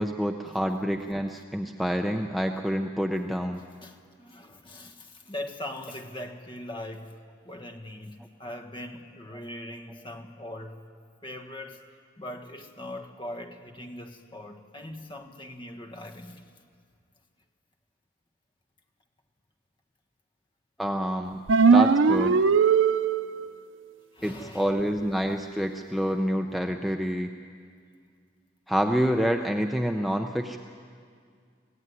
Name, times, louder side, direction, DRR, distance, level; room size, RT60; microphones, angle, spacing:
voice 1, 0.0-3.6 20.8-21.4 21.7-22.4 24.2-27.3 28.7-30.6, equal, ahead, 3 dB, 0.6 m, -27 dB
voice 2, 3.8-10.8 11.2-11.8 12.2-16.4 21.6-21.7 24.1-24.7, left 1 dB, 25° left, 5 dB, 1.5 m, -41 dB
sound 1, 21.5-23.5, right 5 dB, 90° right, 0.5 m, -19 dB
25.0 x 17.0 x 9.7 m, 2.2 s
head